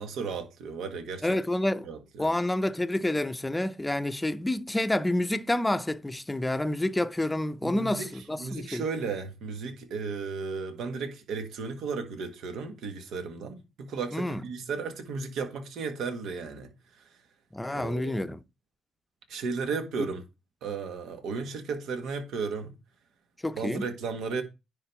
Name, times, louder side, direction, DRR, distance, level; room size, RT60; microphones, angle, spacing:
voice 1, 0.0-1.3 1.8-2.3 7.6-8.1 8.4-16.7 17.7-18.3 19.3-20.2 20.6-22.7 23.5-24.4, right 4 dB, 80° right, 1.6 m, -34 dB
voice 2, 1.2-1.9 2.2-8.9 14.1-14.4 17.5-18.4 23.4-23.9, left 1 dB, 10° left, 0.6 m, -28 dB
10.0 x 3.9 x 4.6 m
cardioid pair, 90°, 0 cm